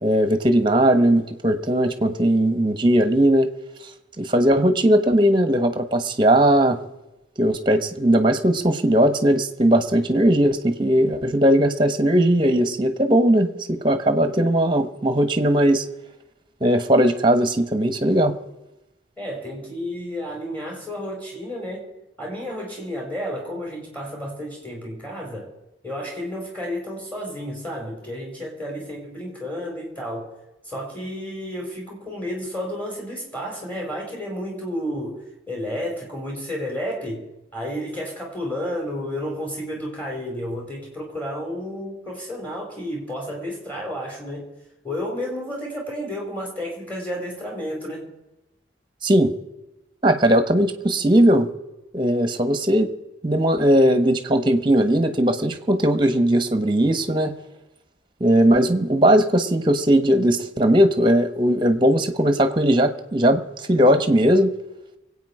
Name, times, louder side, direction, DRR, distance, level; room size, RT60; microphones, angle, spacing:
voice 1, 0.0-3.5 4.2-6.8 7.4-15.8 16.6-18.3 49.0-49.3 50.0-51.5 51.9-52.9 53.2-57.3 58.2-63.4 63.7-64.5, right 1 dB, 25° right, 10 dB, 1.2 m, -18 dB
voice 2, 19.2-21.9 22.2-25.5 25.8-30.3 30.6-35.2 35.5-37.2 37.5-44.5 44.8-48.1, equal, 10° left, -1 dB, 5.0 m, -31 dB
24.5 x 8.7 x 4.9 m, 0.98 s
head